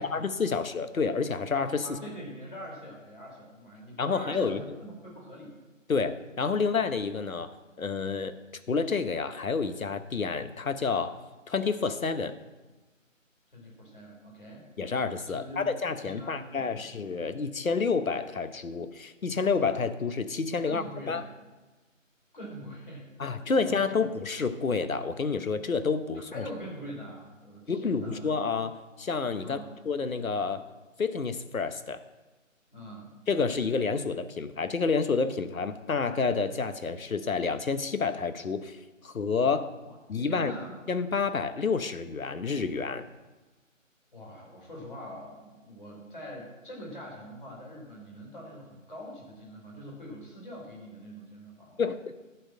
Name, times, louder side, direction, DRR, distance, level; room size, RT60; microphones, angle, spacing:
voice 1, 0.0-2.0 4.0-4.6 5.9-8.3 8.7-11.2 11.5-12.3 14.8-21.2 23.2-26.4 27.7-29.6 29.8-30.7 31.0-32.0 33.3-39.7 40.1-40.5 40.9-43.1 51.8-52.1, left 5 dB, 90° left, 11 dB, 1.1 m, -29 dB
voice 2, 1.8-5.5 13.5-14.6 15.3-15.7 16.0-16.9 20.6-21.3 22.3-23.1 23.5-24.1 26.3-28.3 29.4-29.7 32.7-33.1 39.9-40.0 40.2-40.8 44.1-51.8, equal, 40° left, -3 dB, 3.7 m, -43 dB
11.5 x 4.7 x 7.5 m, 1.2 s
figure-of-eight pair, 180°, 40 cm